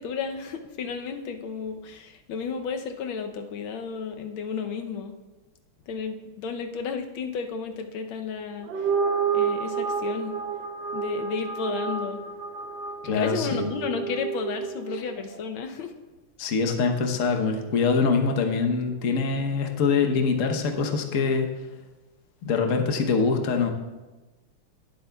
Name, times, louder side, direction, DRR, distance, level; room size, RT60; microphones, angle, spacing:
voice 1, 0.0-5.1 5.9-8.9 9.3-10.4 10.9-12.2 13.1-15.9, left 6 dB, 75° left, 6 dB, 1.5 m, -33 dB
sound 1, 8.6-15.2, right 6 dB, 60° right, 1.2 m, -29 dB
voice 2, 13.0-13.8 16.4-21.5 22.4-23.7, left 5 dB, 50° left, 4 dB, 1.0 m, -24 dB
19.0 x 7.9 x 2.3 m, 1.2 s
omnidirectional pair, 2.4 m